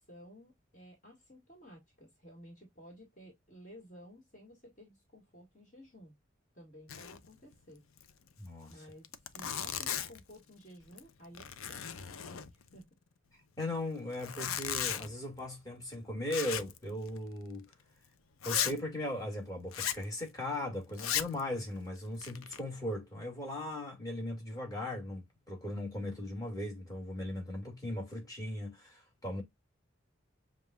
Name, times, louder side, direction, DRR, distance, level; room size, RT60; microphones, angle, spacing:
voice 1, 0.0-6.2 6.5-7.8 8.7-12.9, equal, 35° left, 1.9 m, -54 dB
Zipper (clothing), 6.9-7.3 7.5-7.6 8.0-8.1 8.7-8.8 9.0-10.3 10.8-11.1 11.3-12.8 14.1-15.1 16.3-16.8 17.1-17.2 17.7-17.8 18.4-18.8 19.7-20.0 20.9-21.4 22.0-22.6, left 9 dB, 90° left, 0.6 m, -36 dB
voice 2, 8.4-8.9 13.6-17.7 18.4-29.4, left 1 dB, 15° left, 2.1 m, -38 dB
7.2 x 2.5 x 2.3 m
head